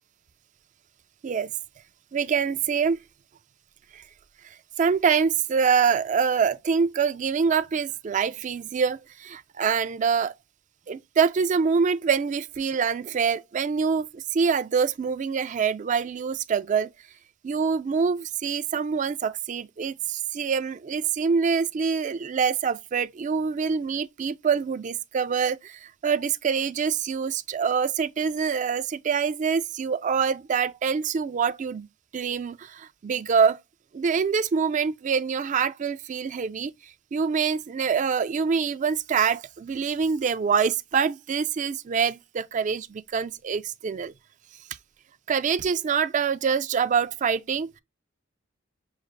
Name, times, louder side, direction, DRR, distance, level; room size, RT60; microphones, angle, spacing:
voice 1, 2.1-3.0 3.9-4.0 4.8-10.3 10.9-16.9 17.4-31.9 32.1-33.6 33.9-44.1 45.3-47.7, right 6 dB, 35° right, 0.3 m, -25 dB
6.4 x 2.4 x 3.1 m
head